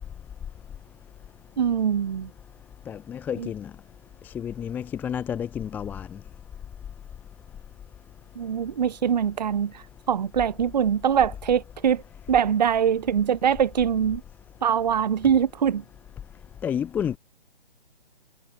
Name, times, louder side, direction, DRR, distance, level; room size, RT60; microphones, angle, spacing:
voice 1, 1.6-2.3 3.4-3.5 8.4-12.0 12.3-14.2 14.6-15.8, right 8 dB, 45° right, 0.9 m, -23 dB
voice 2, 2.9-3.7 4.2-6.1 16.6-17.2, left 8 dB, 5° left, 0.9 m, -30 dB
figure-of-eight pair, 135°, 31 cm